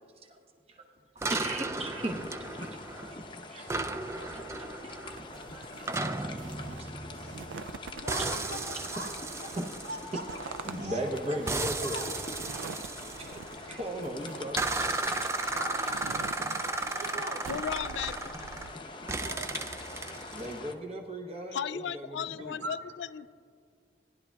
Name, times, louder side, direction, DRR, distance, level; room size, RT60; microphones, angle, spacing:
voice 1, 1.1-2.8 3.1-3.2 3.5-4.0 4.3-4.7 5.1-5.2 5.5-6.0 6.7-6.9 8.1-8.5 9.5-9.7 10.4-12.0 13.0-15.2 18.9-19.1 20.3-22.6, right 1 dB, 30° right, 2 dB, 0.8 m, -38 dB
sound 1, 1.2-3.3 3.7-7.7 8.1-10.8 11.5-13.9 14.6-18.8 19.1-20.6, right 2 dB, 15° right, 0.3 m, -35 dB
sound 2, 1.8-20.7, left 3 dB, 25° left, 0.6 m, -44 dB
voice 2, 3.8-5.1 5.9-6.8 7.1-7.4 7.9-9.1 9.4-9.5 9.8-10.4 10.7-11.0 11.6-12.1 15.0-16.2 17.0-17.4 19.0-20.0 22.6-22.7, right 1 dB, 70° right, -1 dB, 1.9 m, -43 dB
sound 3, 5.1-18.7, right 5 dB, 90° right, 0.4 m, -46 dB
voice 3, 17.5-18.3 21.5-23.3, left 8 dB, 75° left, 16 dB, 0.3 m, -35 dB
18.0 x 11.0 x 2.3 m, 2.2 s
head